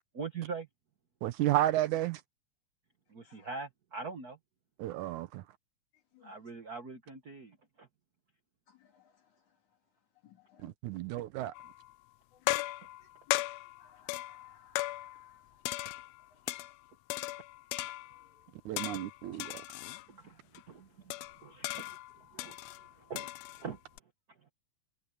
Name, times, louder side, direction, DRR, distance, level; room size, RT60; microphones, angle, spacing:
voice 1, 0.1-0.7 3.1-4.4 6.2-7.9 12.8-12.9 18.3-18.5 19.4-19.8 20.1-24.0 24.3-24.5, right 5 dB, 55° right, 1.0 m, -44 dB
voice 2, 1.2-2.2 4.8-5.4 10.6-11.5 18.7-19.6, right 14 dB, 75° right, 2.2 m, -32 dB
voice 3, 10.2-10.7 12.5-12.7 13.8-14.8 21.7-21.8, left 10 dB, 65° left, 4.4 m, -59 dB
sound 1, 11.5-11.9 12.5-15.4 15.6-16.7 17.1-18.3 18.8-20.1 20.5-20.6 21.1-24.0, left 18 dB, 90° left, 1.5 m, -37 dB
omnidirectional pair, 3.6 m